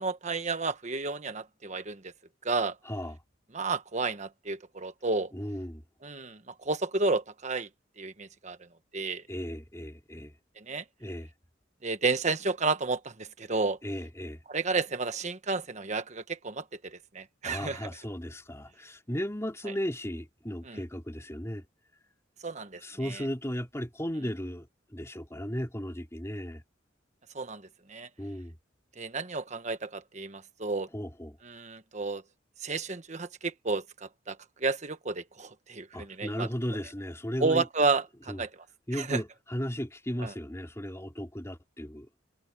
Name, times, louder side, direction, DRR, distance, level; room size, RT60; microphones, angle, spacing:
voice 1, 0.0-2.1 2.4-2.8 3.5-5.3 6.0-7.7 8.0-8.6 8.9-9.2 10.6-10.8 11.8-13.8 14.5-17.9 20.6-20.8 22.4-23.2 27.3-28.1 29.0-30.9 31.4-32.2 32.6-36.5 37.4-38.6 38.9-39.2 40.2-40.3, right 3 dB, 40° right, 1.3 m, -32 dB
voice 2, 2.8-3.2 5.3-5.8 9.3-10.3 11.0-11.3 13.8-14.4 17.4-21.6 22.8-26.6 28.2-28.6 30.9-31.4 35.9-37.6 38.3-38.4 38.9-42.1, equal, 15° left, 3.4 m, -35 dB
head